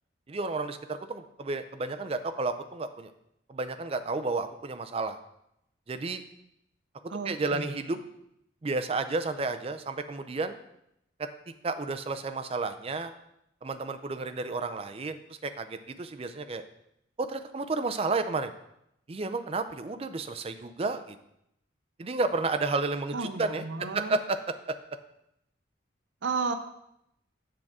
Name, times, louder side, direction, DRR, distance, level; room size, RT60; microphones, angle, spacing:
voice 1, 0.3-3.1 3.5-5.2 5.9-6.2 7.2-8.0 8.6-10.6 11.2-11.3 11.6-13.1 13.6-16.6 17.2-18.5 19.1-21.2 22.0-23.7 23.9-24.4 24.7-24.8, right 3 dB, 30° right, 9 dB, 0.4 m, -31 dB
voice 2, 7.1-7.9 23.1-24.2 26.2-26.5, right 4 dB, 75° right, 8 dB, 0.6 m, -33 dB
7.6 x 6.1 x 3.6 m, 0.80 s
head